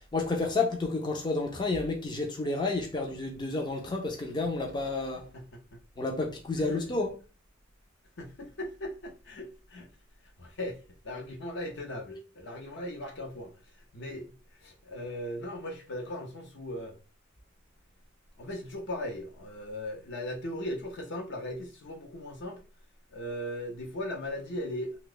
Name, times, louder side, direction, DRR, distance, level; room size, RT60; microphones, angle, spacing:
voice 1, 0.1-5.3 6.0-7.2, left 3 dB, 20° left, 0.4 m, -30 dB
voice 2, 5.3-5.8 6.6-6.8 8.2-9.9 10.4-10.8 11.0-13.5 13.9-14.3 14.6-16.9 18.4-22.6 23.1-25.0, left 1 dB, 60° left, 0.7 m, -38 dB
2.8 x 2.2 x 3.8 m
head